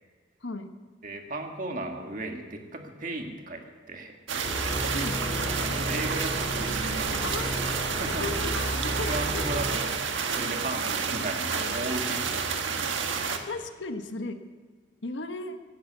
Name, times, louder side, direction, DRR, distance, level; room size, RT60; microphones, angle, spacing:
voice 1, 0.4-0.7 4.9-5.2 7.2-7.7 8.1-9.6 11.5-12.0 13.5-14.4 15.0-15.6, left 3 dB, 75° left, 8 dB, 1.1 m, -36 dB
voice 2, 1.0-4.2 5.6-7.2 8.0-8.4 9.1-9.9 10.3-12.3 12.8-13.0, right 2 dB, 45° right, 3 dB, 1.7 m, -35 dB
sound 1, 4.3-13.4, right 5 dB, 90° right, 1.5 m, -30 dB
sound 2, 4.4-9.9, equal, 10° left, 3.0 m, -33 dB
17.0 x 10.0 x 8.0 m, 1.5 s
head